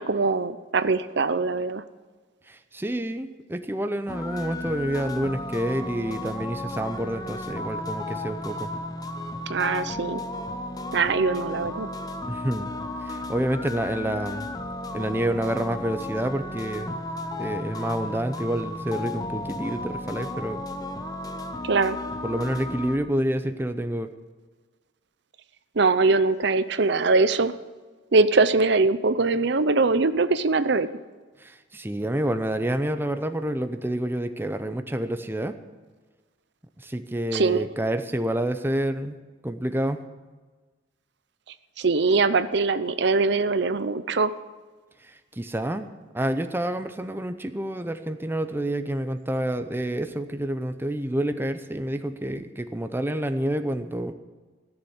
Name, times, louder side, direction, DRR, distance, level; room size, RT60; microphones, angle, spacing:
voice 1, 0.0-1.8 9.5-10.2 10.9-11.9 21.6-22.0 25.8-27.5 28.1-30.9 37.3-37.7 41.8-44.3, right 3 dB, 60° right, 13 dB, 0.6 m, -22 dB
voice 2, 2.5-8.7 12.3-12.7 13.0-14.5 14.9-17.0 17.4-20.6 22.2-24.1 31.4-35.5 36.8-40.0 45.0-45.9 46.1-54.1, right 1 dB, 10° right, 8 dB, 0.7 m, -28 dB
sound 1, 4.1-23.0, left 2 dB, 20° left, 0.9 m, -34 dB
16.5 x 7.1 x 9.5 m, 1.4 s
head